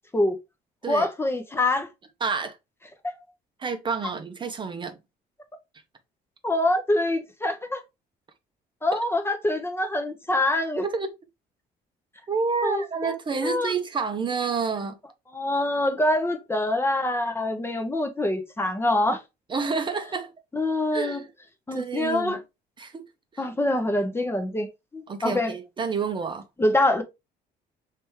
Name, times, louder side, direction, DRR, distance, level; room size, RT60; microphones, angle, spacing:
voice 1, 0.9-1.9 3.0-3.1 6.4-7.8 8.8-10.8 12.6-13.1 13.4-13.7 15.3-19.2 20.5-21.2 21.7-22.4 23.4-25.5 26.6-27.0, left 1 dB, 15° left, 0.6 m, -25 dB
voice 2, 2.2-2.6 3.6-5.0 8.9-9.0 10.8-11.1 12.3-15.0 19.5-20.3 20.9-21.3 21.7-22.4 22.8-23.0 23.3-23.4 25.1-26.4, right 5 dB, 30° right, 0.6 m, -29 dB
3.4 x 3.2 x 3.0 m
cardioid pair, 110°, 17 cm